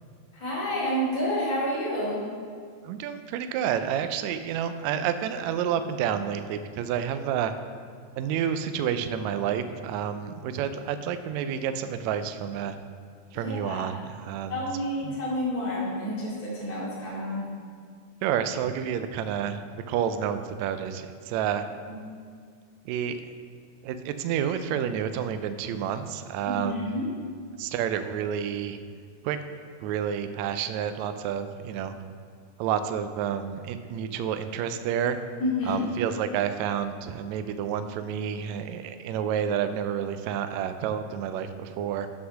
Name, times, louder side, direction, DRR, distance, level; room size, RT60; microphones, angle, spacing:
voice 1, 0.3-2.2 13.4-13.8 14.5-17.5 21.9-22.0 26.5-27.1 35.4-35.8, left 1 dB, 15° left, -9 dB, 1.7 m, -29 dB
voice 2, 2.8-7.5 8.2-12.8 13.3-14.6 15.0-15.2 18.2-21.7 22.8-23.2 23.8-26.9 27.6-28.8 29.2-29.4 29.8-31.9 32.6-35.2 35.6-42.1, right 8 dB, 85° right, 9 dB, 1.6 m, -29 dB
7.7 x 5.7 x 6.3 m, 2.1 s
omnidirectional pair, 3.7 m